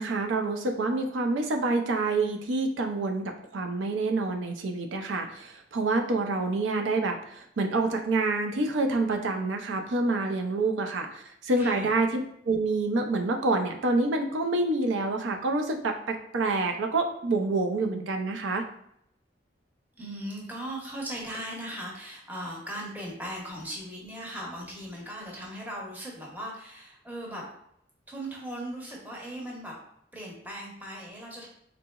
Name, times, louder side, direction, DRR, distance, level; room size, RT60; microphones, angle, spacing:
voice 1, 0.0-18.6, right 3 dB, 80° right, 4 dB, 0.5 m, -27 dB
voice 2, 11.6-11.9 20.0-27.5 28.1-29.7 30.1-31.5, right 1 dB, 10° right, -3 dB, 0.7 m, -38 dB
3.8 x 2.8 x 2.3 m, 0.73 s
head